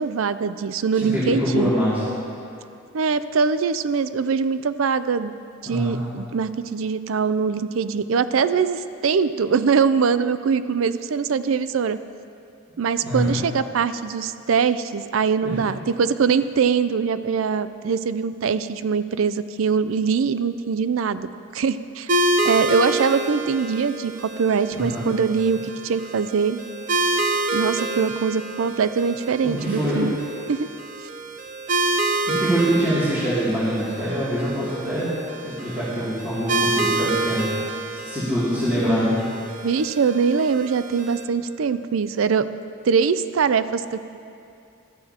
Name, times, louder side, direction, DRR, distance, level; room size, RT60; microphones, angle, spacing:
voice 1, 0.0-1.7 2.9-5.4 5.6-12.0 12.8-22.1 22.4-26.6 27.5-30.1 30.5-30.7 39.6-42.5 42.9-44.0, right 5 dB, 85° right, 13 dB, 0.4 m, -22 dB
voice 2, 0.9-2.0 5.7-6.0 13.0-13.4 15.4-15.6 24.7-25.0 29.4-30.1 32.3-35.1 35.4-37.4 38.0-39.1, equal, 10° right, -13 dB, 2.6 m, -24 dB
sound 1, 22.1-41.2, right 2 dB, 40° right, 0.6 m, -28 dB
16.5 x 13.0 x 2.9 m, 2.5 s
head